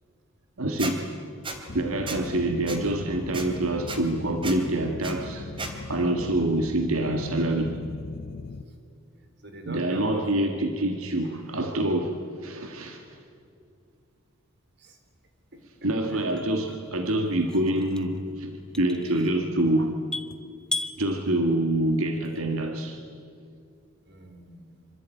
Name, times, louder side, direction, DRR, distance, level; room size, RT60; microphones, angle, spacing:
voice 1, 0.6-1.1 1.7-7.8 9.7-13.2 15.8-20.0 21.0-23.0, right 1 dB, 85° right, 1.8 m, -26 dB
Squeak, 0.8-0.9 1.4-1.6 2.1-2.2 2.7-2.8 3.3-3.4 3.9-4.0 4.4-4.6 5.0-5.1 5.6-5.7, right 3 dB, 25° right, 2.9 m, -33 dB
sound 1, 1.7-8.6, left 3 dB, 40° left, 0.6 m, -38 dB
voice 2, 9.4-10.3 14.8-15.0 15.5-16.4 24.1-24.9, right 1 dB, 50° right, 4.0 m, -42 dB
sound 2, 15.1-22.6, left 2 dB, 5° left, 0.9 m, -39 dB
26.0 x 25.0 x 9.1 m
head